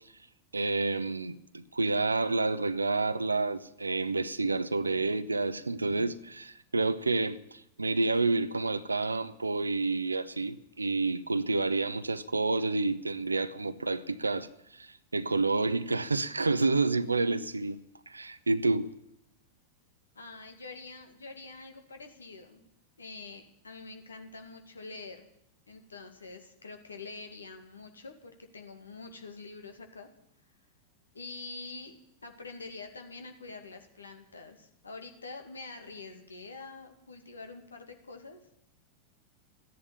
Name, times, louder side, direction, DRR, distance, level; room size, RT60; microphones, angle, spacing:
voice 1, 0.5-17.8 18.1-18.9, right 3 dB, 80° right, 0.7 m, -29 dB
voice 2, 20.2-22.7 23.0-25.3 25.7-30.1 31.1-31.9 32.2-38.4, left 3 dB, 75° left, 2.1 m, -46 dB
14.0 x 10.5 x 9.9 m
figure-of-eight pair, 90°, 0 cm